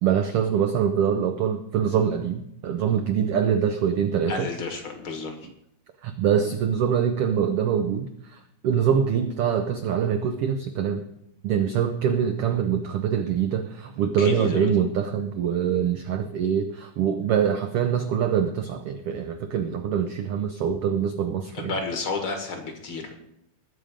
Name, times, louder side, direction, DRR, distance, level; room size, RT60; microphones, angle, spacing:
voice 1, 0.0-4.5 6.0-11.0 11.4-21.7, right 8 dB, 80° right, 8 dB, 1.3 m, -24 dB
voice 2, 4.3-5.4 14.2-14.7 21.7-23.1, left 4 dB, 50° left, 4 dB, 2.0 m, -31 dB
20.5 x 7.5 x 5.1 m, 0.78 s
omnidirectional pair, 3.5 m